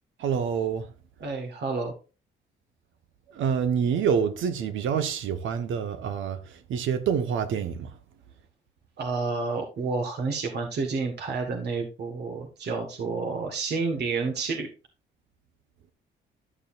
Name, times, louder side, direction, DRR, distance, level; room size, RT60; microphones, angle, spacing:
voice 1, 0.2-0.9 3.3-6.4 6.7-7.9, right 7 dB, 80° right, 1.1 m, -26 dB
voice 2, 1.2-1.9 9.0-14.7, right 4 dB, 55° right, 1.5 m, -30 dB
11.5 x 6.7 x 2.5 m
cardioid pair, 90°, 20 cm